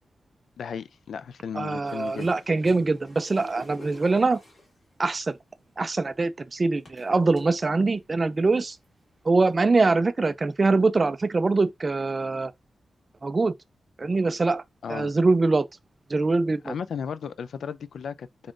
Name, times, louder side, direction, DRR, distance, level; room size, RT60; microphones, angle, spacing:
voice 1, 0.6-2.3 14.8-15.1 16.6-18.5, left 7 dB, 75° left, 0.3 m, -35 dB
voice 2, 1.6-4.4 5.0-5.3 5.8-8.8 9.3-12.5 13.2-13.5 14.0-14.6 14.9-15.7 16.1-16.7, right 3 dB, 25° right, 0.3 m, -23 dB
sound 1, 1.8-4.8 5.8-5.9 6.9-7.4 8.0-8.1 8.5-8.8 9.6-9.7, left 2 dB, 40° left, 1.7 m, -48 dB
3.7 x 3.6 x 2.5 m
wide cardioid pair, 175°, 0 cm